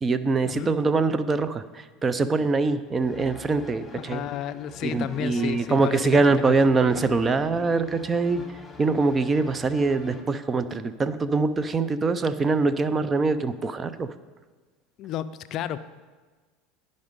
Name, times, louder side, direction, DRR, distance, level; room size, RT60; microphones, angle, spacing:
voice 1, 0.0-4.2 4.8-14.1, right 3 dB, 25° right, 13 dB, 0.5 m, -24 dB
sound 1, 3.0-10.2, left 2 dB, 20° left, 1.3 m, -44 dB
voice 2, 3.9-6.0 15.0-15.8, left 10 dB, 55° left, 13 dB, 0.4 m, -32 dB
10.5 x 5.3 x 5.2 m, 1.4 s
hypercardioid pair, 95°, 0 cm